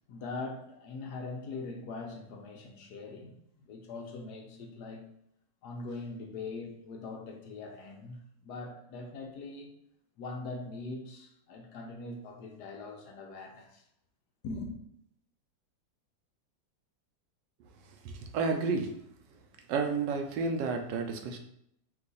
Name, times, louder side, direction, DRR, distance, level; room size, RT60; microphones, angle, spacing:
voice 1, 0.1-5.0 5.6-9.7 10.2-13.8 14.4-14.8, left 3 dB, 70° left, 1.1 m, -42 dB
voice 2, 18.0-18.9 19.7-21.4, right 4 dB, 75° right, 1.2 m, -31 dB
4.5 x 2.4 x 3.9 m
omnidirectional pair, 2.0 m